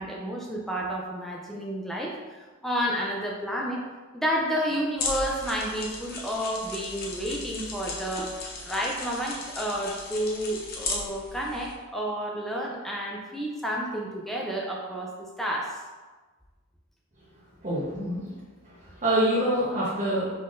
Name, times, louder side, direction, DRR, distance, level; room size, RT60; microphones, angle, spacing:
voice 1, 0.0-3.8 4.1-15.1 15.4-15.8, equal, ahead, -2 dB, 0.4 m, -30 dB
sound 1, 5.0-11.7, left 3 dB, 45° left, 0.8 m, -36 dB
voice 2, 17.6-18.3 18.6-20.3, right 1 dB, 35° right, -9 dB, 1.0 m, -26 dB
5.5 x 3.7 x 2.5 m, 1.3 s
head